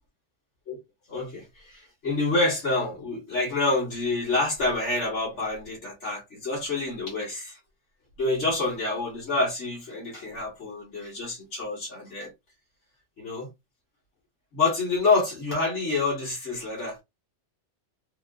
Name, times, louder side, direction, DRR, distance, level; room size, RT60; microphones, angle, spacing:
voice 1, 1.1-7.6 8.2-12.3 13.2-13.5 14.5-17.0, left 3 dB, 90° left, 1.9 m, -27 dB
4.1 x 2.2 x 2.5 m
omnidirectional pair, 1.2 m